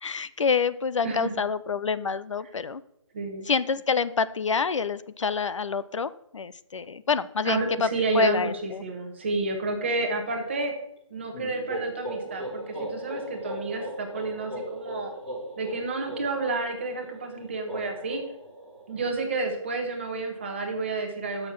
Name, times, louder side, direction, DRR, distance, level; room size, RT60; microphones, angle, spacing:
voice 1, 0.0-2.8 3.5-8.8, left 5 dB, 65° left, 15 dB, 0.5 m, -27 dB
voice 2, 1.0-1.4 3.1-3.5 7.4-10.7 11.1-15.1 15.6-18.2 18.9-21.5, right 3 dB, 20° right, 3 dB, 1.1 m, -30 dB
sound 1, 11.3-19.0, right 1 dB, 10° left, 1.1 m, -38 dB
6.5 x 6.5 x 5.8 m, 0.78 s
hypercardioid pair, 180°, 17 cm